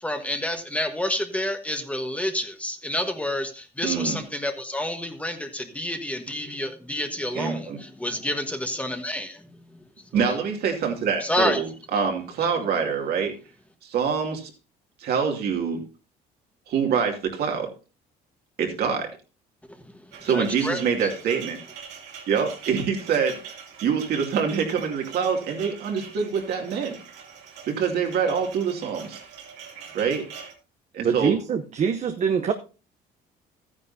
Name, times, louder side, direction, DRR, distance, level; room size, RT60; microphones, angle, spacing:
voice 1, 0.0-9.4 10.2-10.4 11.2-11.6 20.3-20.8, left 1 dB, 10° left, 6 dB, 1.3 m, -29 dB
voice 2, 3.8-4.2 7.3-7.8 10.1-13.3 13.8-14.5 15.0-15.8 16.7-17.7 18.6-19.2 20.2-21.6 22.3-27.0 27.7-29.2 29.9-30.2 30.9-31.4, right 6 dB, 70° right, 2 dB, 2.5 m, -25 dB
sound 1, 20.1-30.5, right 7 dB, 85° right, 2.8 m, -43 dB
voice 3, 31.0-32.5, right 7 dB, 45° right, 7 dB, 0.8 m, -24 dB
13.5 x 9.7 x 2.7 m, 0.32 s
cardioid pair, 110°, 17 cm